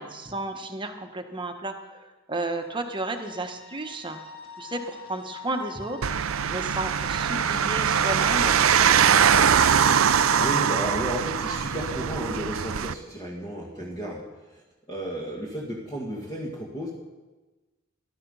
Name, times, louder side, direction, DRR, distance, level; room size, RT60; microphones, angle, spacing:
voice 1, 0.0-4.2 4.6-6.2 6.5-9.0 9.2-9.4 13.7-13.8, right 2 dB, 25° right, 5 dB, 1.3 m, -33 dB
sound 1, 2.5-10.7, left 5 dB, 50° left, 2.1 m, -44 dB
sound 2, 6.0-12.9, right 7 dB, 90° right, 0.6 m, -22 dB
voice 2, 10.3-16.9, right 1 dB, 25° left, -4 dB, 2.2 m, -33 dB
18.5 x 12.0 x 5.6 m, 1.2 s
head